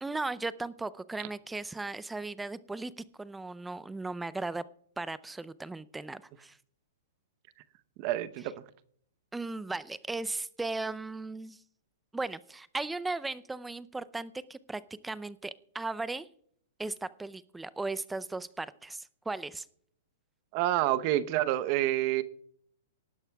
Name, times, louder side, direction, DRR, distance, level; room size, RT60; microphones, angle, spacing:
voice 1, 0.0-4.6 5.0-6.6 9.3-11.6 12.1-16.3 16.8-19.7, right 3 dB, 5° right, 0.5 m, -37 dB
voice 2, 8.0-8.5 20.5-22.2, right 14 dB, 45° right, 0.8 m, -28 dB
19.0 x 11.0 x 2.3 m
hypercardioid pair, 130°, 0 cm